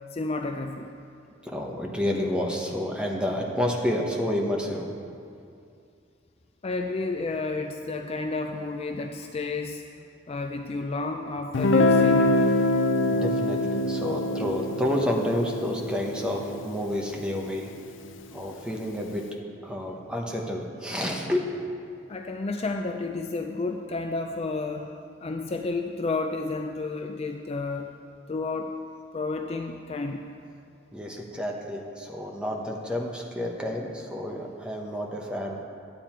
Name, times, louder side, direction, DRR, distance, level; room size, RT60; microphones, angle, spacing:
voice 1, 0.1-0.9 6.6-9.8 10.3-12.5 22.1-24.9 25.2-27.9 28.3-28.8 29.1-30.2, left 3 dB, 30° left, 4 dB, 0.4 m, -31 dB
voice 2, 1.4-4.9 13.1-17.7 18.3-19.3 19.6-21.6 30.9-35.6, left 1 dB, 5° right, -1 dB, 1.1 m, -29 dB
Guitar, 11.5-17.3, left 2 dB, 80° left, 0.6 m, -24 dB
12.0 x 9.1 x 4.5 m, 2.4 s
head